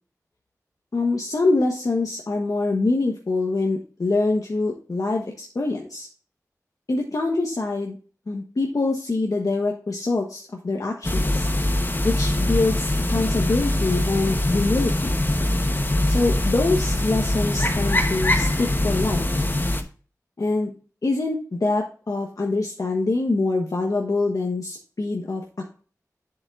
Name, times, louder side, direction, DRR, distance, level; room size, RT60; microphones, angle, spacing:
voice 1, 0.9-6.1 6.9-8.0 8.3-11.5 12.0-15.1 16.1-19.2 20.4-20.7 21.0-25.4, left 3 dB, 65° left, 0 dB, 1.2 m, -24 dB
sound 1, 11.0-19.8, left 1 dB, 35° left, 1.1 m, -23 dB
8.0 x 7.3 x 2.5 m, 0.38 s
wide cardioid pair, 65°, 6 cm